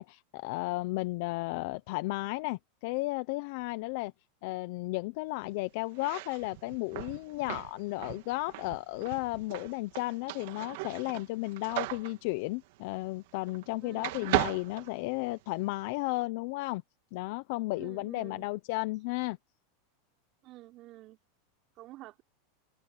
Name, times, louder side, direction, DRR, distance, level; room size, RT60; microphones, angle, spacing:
voice 1, 0.0-4.1 4.4-16.8 17.1-19.4, left 22 dB, 60° left, 0.8 m, -34 dB
sound 1, 5.9-13.7 14.0-15.6, right 19 dB, 65° right, 2.0 m, -37 dB
voice 2, 13.8-14.2 17.8-18.5 20.4-21.2 21.8-22.2, right 17 dB, 45° right, 5.4 m, -49 dB
supercardioid pair, 135°, 0 cm